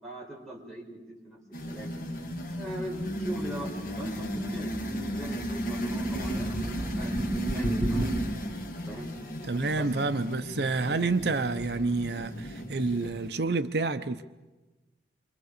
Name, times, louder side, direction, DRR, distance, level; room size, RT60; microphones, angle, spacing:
voice 1, 0.0-1.4 1.6-1.9 2.4-3.7 4.0-4.7 5.2-8.2 8.9-9.1 9.8-9.9, right 1 dB, 5° left, 5.1 m, -40 dB
sound 1, 1.5-13.3, equal, 50° left, 1.9 m, -34 dB
sound 2, 2.3-8.3, right 1 dB, 30° right, 1.8 m, -37 dB
voice 2, 9.4-14.2, right 3 dB, 70° right, 0.8 m, -29 dB
27.5 x 24.5 x 6.7 m
head